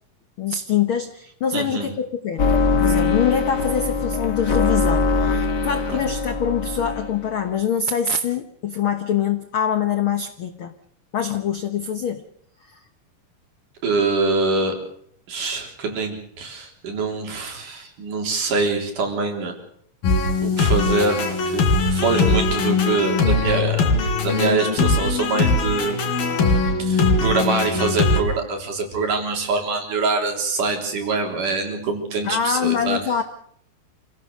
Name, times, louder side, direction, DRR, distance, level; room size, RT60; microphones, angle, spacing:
voice 1, 0.4-10.7 11.1-12.2 12.6-12.8 32.2-33.2, left 7 dB, 70° left, 8 dB, 1.2 m, -24 dB
voice 2, 1.5-1.9 13.8-14.7 15.3-19.6 20.4-21.2 21.5-26.0 26.5-33.0, right 3 dB, 65° right, 3 dB, 5.1 m, -24 dB
sound 1, 2.4-7.3, left 4 dB, 40° left, 1.8 m, -22 dB
sound 2, 20.0-28.2, left 3 dB, 85° left, 5.1 m, -20 dB
27.5 x 16.5 x 6.6 m, 0.68 s
omnidirectional pair, 4.1 m